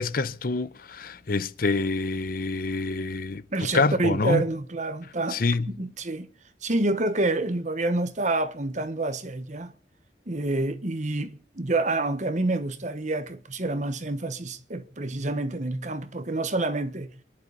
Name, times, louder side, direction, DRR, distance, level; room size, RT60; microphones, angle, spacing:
voice 1, 0.0-3.4 3.7-4.4 5.3-5.7, left 3 dB, 55° left, 0.7 m, -26 dB
voice 2, 3.5-5.4 5.7-6.3 6.6-9.7 10.3-17.1, right 2 dB, 45° right, 1.3 m, -28 dB
28.5 x 11.5 x 4.1 m
head